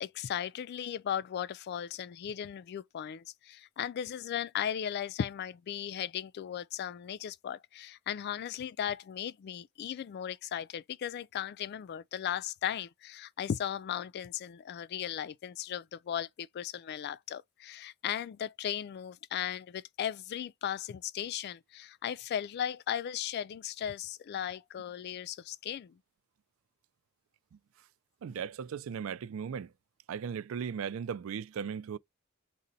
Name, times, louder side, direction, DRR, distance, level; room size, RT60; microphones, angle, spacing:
voice 1, 0.0-26.0, left 9 dB, 50° left, 0.3 m, -36 dB
voice 2, 28.2-29.7 30.1-32.0, right 7 dB, 70° right, 0.3 m, -37 dB
3.9 x 2.1 x 3.9 m
head